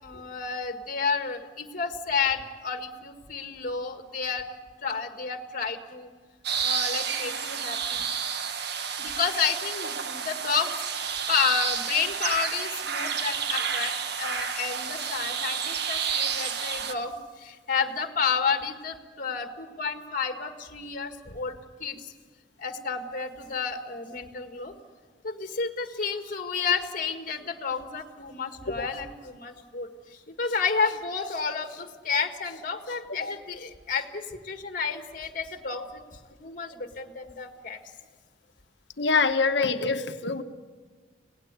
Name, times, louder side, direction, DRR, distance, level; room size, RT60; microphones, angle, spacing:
voice 1, 0.0-4.5 4.8-6.1 6.6-8.1 9.0-22.1 22.6-24.7 25.2-29.9 30.3-36.0 36.4-37.8, left 5 dB, 50° left, 7 dB, 1.8 m, -31 dB
sound 1, 6.4-16.9, right 7 dB, 65° right, 1.4 m, -30 dB
voice 2, 39.0-40.4, left 4 dB, 70° left, 8 dB, 1.3 m, -25 dB
26.0 x 18.0 x 8.2 m, 1.5 s
head